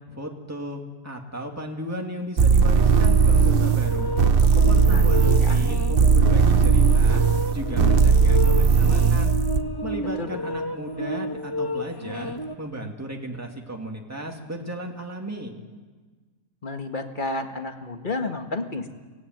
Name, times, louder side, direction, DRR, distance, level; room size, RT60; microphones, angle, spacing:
voice 1, 0.0-4.1 4.7-7.2 7.5-9.3 9.8-15.5, right 1 dB, 10° right, 1 dB, 2.4 m, -35 dB
sound 1, 2.4-9.6, right 5 dB, 45° right, 0.9 m, -18 dB
sound 2, 2.7-12.6, equal, 15° left, 1.1 m, -31 dB
voice 2, 4.6-5.6 10.2-10.4 16.6-18.9, left 2 dB, 35° left, 5 dB, 1.8 m, -32 dB
24.5 x 17.5 x 9.4 m, 1.4 s
omnidirectional pair, 1.5 m